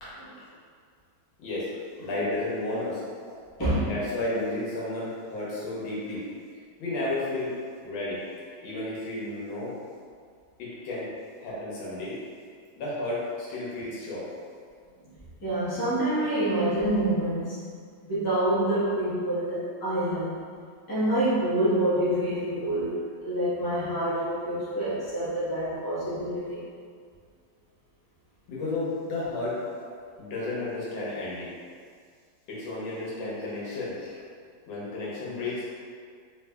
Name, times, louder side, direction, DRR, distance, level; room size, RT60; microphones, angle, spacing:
voice 1, 1.4-1.7 2.0-3.0 3.8-6.2 6.8-7.5 7.8-8.2 8.6-9.7 10.6-11.1 11.4-12.1 12.8-14.3 28.5-29.6 30.2-31.5 32.5-33.9 34.7-35.6, left 2 dB, 80° left, -7 dB, 1.6 m, -32 dB
voice 2, 3.6-3.9 15.4-17.6 18.0-20.4 20.9-26.7, right 1 dB, 20° left, -12 dB, 0.6 m, -27 dB
3.2 x 3.2 x 2.2 m, 2.1 s
omnidirectional pair, 2.1 m